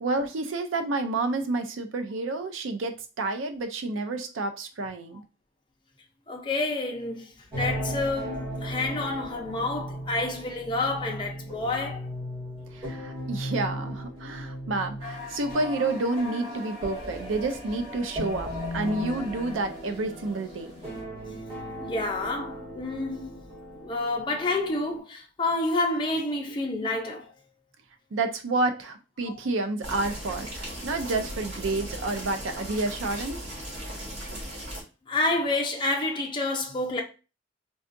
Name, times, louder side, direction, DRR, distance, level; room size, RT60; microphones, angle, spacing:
voice 1, 0.0-5.2 12.7-20.7 28.1-33.4, right 2 dB, 90° right, 0.5 m, -29 dB
voice 2, 6.3-12.1 21.8-23.4 23.8-27.3 35.1-37.0, left 2 dB, 25° left, 0.5 m, -29 dB
sound 1, 7.5-25.0, equal, 30° right, 1.6 m, -37 dB
sound 2, 15.0-21.0, left 4 dB, 50° right, 1.5 m, -44 dB
sound 3, 29.8-34.8, right 1 dB, 70° right, 1.6 m, -37 dB
3.6 x 2.3 x 2.5 m
head